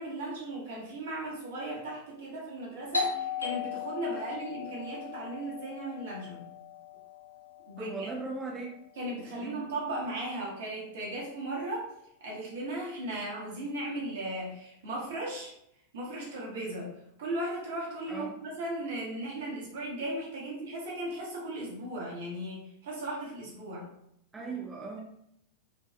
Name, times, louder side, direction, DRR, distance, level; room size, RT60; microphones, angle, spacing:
voice 1, 0.0-6.4 7.7-8.1 9.0-11.9 12.2-15.5 15.9-16.9 17.2-23.9, right 1 dB, 60° right, -3 dB, 0.9 m, -37 dB
Doorbell, 2.9-8.3, left 5 dB, 80° left, 0.3 m, -37 dB
voice 2, 7.8-8.7 9.4-9.6 18.1-18.3 24.3-25.0, right 3 dB, 10° right, -3 dB, 0.4 m, -38 dB
2.6 x 2.2 x 2.3 m, 0.74 s
figure-of-eight pair, 90°, 0 cm